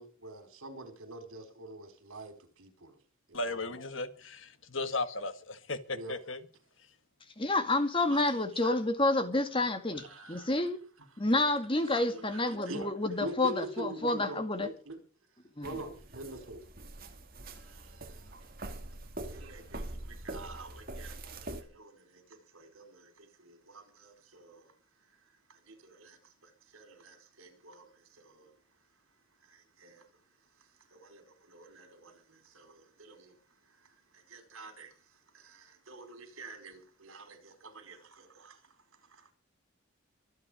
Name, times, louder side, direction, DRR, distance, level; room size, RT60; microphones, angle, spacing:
voice 1, 0.0-2.3 2.6-2.7 3.3-3.8 5.9-6.1 8.1-8.2 8.5-8.7 10.0-10.5 11.8-12.9 13.2-14.9 15.6-16.6 19.4-19.8 20.2-21.1 21.7-21.9 22.5-22.8 24.3-24.5 26.7-27.8 29.8-30.0 30.9-31.2 31.5-32.1 33.1-33.2 34.3-34.9 35.9-36.7 37.0-37.4 37.9-38.0, right 2 dB, 80° right, 4.5 m, -44 dB
voice 2, 3.3-6.4, left 2 dB, 65° left, 1.8 m, -36 dB
voice 3, 7.4-10.0 10.3-10.8 11.2-14.7 15.6-15.7, left 2 dB, 25° left, 2.2 m, -29 dB
sound 1, 15.6-21.6, right 1 dB, 45° right, 2.5 m, -44 dB
25.0 x 9.0 x 5.1 m
head